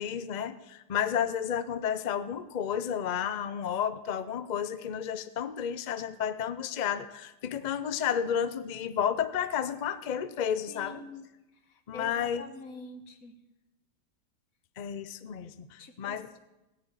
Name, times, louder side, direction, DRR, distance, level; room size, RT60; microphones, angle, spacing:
voice 1, 0.0-11.0 11.9-12.4 14.8-16.3, left 8 dB, 75° left, 12 dB, 0.4 m, -32 dB
voice 2, 10.7-11.3 11.6-13.4 15.8-16.4, left 3 dB, 55° left, 8 dB, 1.6 m, -46 dB
17.5 x 6.8 x 9.0 m, 0.99 s
omnidirectional pair, 1.8 m